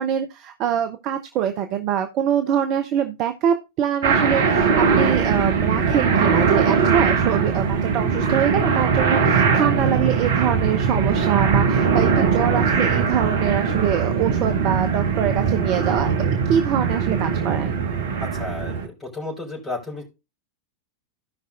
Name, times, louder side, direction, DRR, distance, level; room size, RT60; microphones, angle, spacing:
voice 1, 0.0-16.1 16.5-17.8, right 9 dB, 40° right, 7 dB, 0.8 m, -24 dB
sound 1, 4.0-18.9, right 5 dB, 60° right, 1.2 m, -20 dB
voice 2, 18.2-20.0, left 2 dB, 10° left, -6 dB, 4.4 m, -32 dB
16.5 x 5.5 x 2.5 m, 0.26 s
figure-of-eight pair, 90°, 0 cm